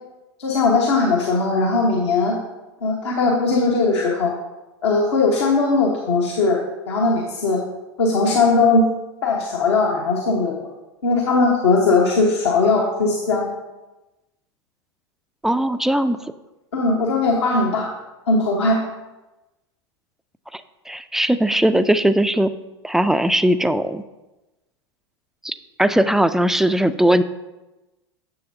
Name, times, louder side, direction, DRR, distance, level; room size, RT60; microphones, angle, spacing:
voice 1, 0.4-2.4 2.8-4.3 4.8-6.6 6.9-7.6 8.0-8.9 9.2-10.6 11.0-13.5 16.7-17.9 18.3-18.8, left 3 dB, 70° left, -2 dB, 1.2 m, -19 dB
voice 2, 15.4-16.2 20.5-20.6 20.9-22.5 22.8-24.0 25.4-27.2, right 1 dB, 5° right, 11 dB, 0.3 m, -19 dB
10.0 x 6.9 x 2.7 m, 1.1 s
figure-of-eight pair, 85°, 15 cm